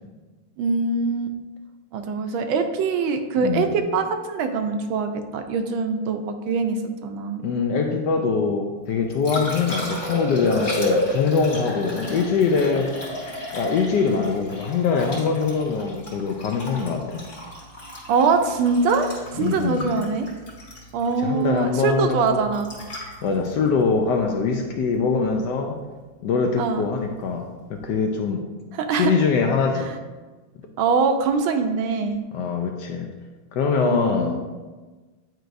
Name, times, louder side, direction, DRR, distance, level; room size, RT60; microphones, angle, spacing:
voice 1, 0.6-1.4 1.9-7.4 9.3-9.5 18.1-20.3 20.9-22.7 26.6-26.8 28.7-29.1 29.8-29.9 30.8-32.2 33.8-34.4, right 4 dB, 85° right, 6 dB, 1.4 m, -23 dB
voice 2, 3.4-3.7 7.4-13.0 13.5-17.2 19.4-19.9 21.2-22.4 23.2-25.8 26.2-28.5 28.9-29.9 32.3-33.1 33.5-34.4, left 5 dB, 75° left, 3 dB, 1.0 m, -23 dB
Liquid, 8.8-24.9 27.7-27.9, left 1 dB, 40° left, 1.8 m, -32 dB
9.1 x 4.6 x 2.5 m, 1.3 s
omnidirectional pair, 2.2 m